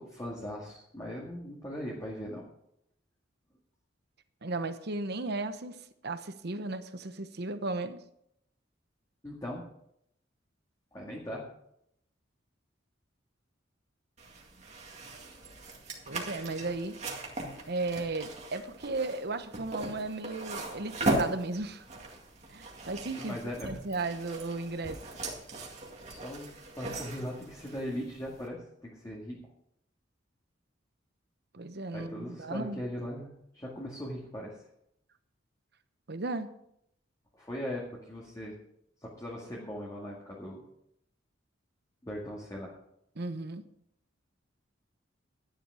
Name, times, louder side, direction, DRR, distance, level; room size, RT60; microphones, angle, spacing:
voice 1, 0.0-2.4 9.2-9.6 10.9-11.5 23.2-23.7 26.1-29.4 31.9-34.6 37.4-38.5 39.0-40.6 42.0-42.7, equal, 20° left, -4 dB, 2.1 m, -39 dB
voice 2, 4.4-5.7 6.0-8.0 16.1-17.0 17.7-21.8 22.5-23.4 23.6-25.0 31.5-32.8 36.1-36.5 43.2-43.6, right 3 dB, 55° right, 10 dB, 1.0 m, -35 dB
sound 1, 14.2-28.5, right 2 dB, 35° right, 2.1 m, -38 dB
12.5 x 10.0 x 4.9 m, 0.75 s
head